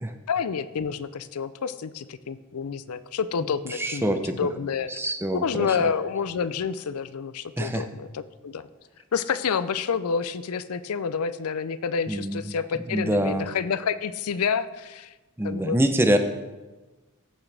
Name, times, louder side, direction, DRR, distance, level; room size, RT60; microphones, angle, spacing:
voice 1, 0.3-4.9 5.3-8.7 9.1-15.1 15.4-15.8, left 6 dB, 85° left, 14 dB, 0.5 m, -29 dB
voice 2, 3.7-4.4 5.0-5.7 7.6-7.9 12.1-12.5 12.9-13.5 15.4-16.2, right 1 dB, 10° right, 6 dB, 0.6 m, -25 dB
15.0 x 6.1 x 3.4 m, 1.2 s
head